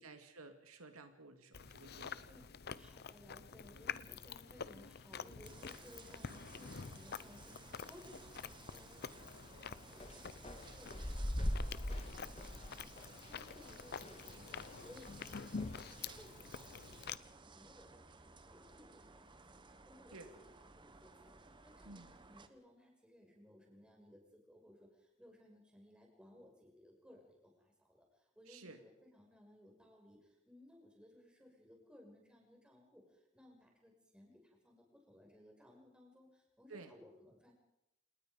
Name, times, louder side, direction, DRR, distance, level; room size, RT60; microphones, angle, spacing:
voice 1, 0.0-2.4 20.1-20.3 21.9-22.1 28.5-28.8 36.7-36.9, right 3 dB, 90° right, 6 dB, 2.3 m, -54 dB
Chewing mastication, 1.5-17.2, left 6 dB, 50° left, 0.7 m, -48 dB
voice 2, 2.7-19.2 19.9-28.0 28.4-37.5, left 1 dB, 5° right, 0 dB, 6.0 m, -61 dB
sound 1, 5.4-22.5, right 4 dB, 20° right, 1.1 m, -58 dB
sound 2, 10.0-14.8 15.1-16.2, equal, 30° left, 1.7 m, -41 dB
28.5 x 19.0 x 5.2 m, 0.83 s
head